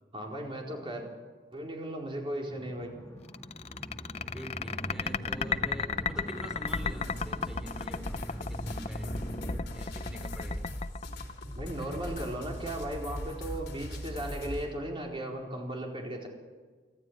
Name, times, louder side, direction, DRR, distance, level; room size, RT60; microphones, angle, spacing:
voice 1, 0.1-1.0 1.5-2.9 11.5-16.3, right 1 dB, 30° right, 0 dB, 4.4 m, -36 dB
sound 1, 2.5-9.6, equal, 20° left, 1.9 m, -42 dB
sound 2, 3.3-12.0, left 5 dB, 40° left, 0.6 m, -34 dB
voice 2, 4.3-9.2 9.7-10.6, equal, 5° right, 3 dB, 3.5 m, -45 dB
sound 3, 6.7-14.7, left 1 dB, 70° left, 3.9 m, -39 dB
25.5 x 14.0 x 8.9 m, 1.4 s
head